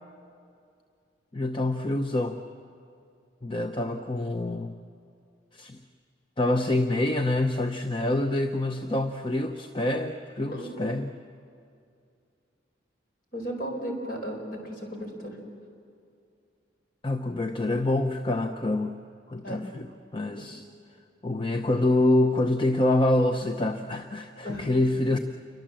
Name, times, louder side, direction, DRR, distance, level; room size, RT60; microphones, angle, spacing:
voice 1, 1.3-2.4 3.4-4.8 5.5-5.8 6.4-11.1 17.0-19.0 19.3-20.6 21.2-25.2, left 1 dB, 25° left, 7 dB, 0.7 m, -26 dB
voice 2, 13.3-15.4 19.4-19.6 20.4-20.5 24.4-24.7, equal, 50° left, 2 dB, 4.5 m, -35 dB
28.0 x 23.0 x 7.5 m, 2.4 s
head